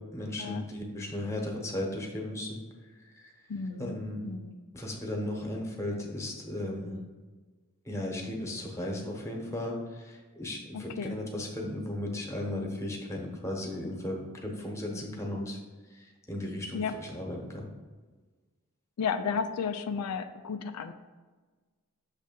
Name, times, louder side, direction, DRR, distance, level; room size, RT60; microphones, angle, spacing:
voice 1, 0.1-2.6 3.2-3.3 3.8-4.2 4.7-7.0 7.9-15.6 15.9-17.7, left 1 dB, 15° left, 0 dB, 1.0 m, -36 dB
voice 2, 3.5-4.0 4.2-4.6 10.7-11.2 14.9-15.2 16.7-16.9 19.0-20.9, left 6 dB, 90° left, 8 dB, 0.4 m, -33 dB
6.4 x 3.3 x 5.1 m, 1.3 s
head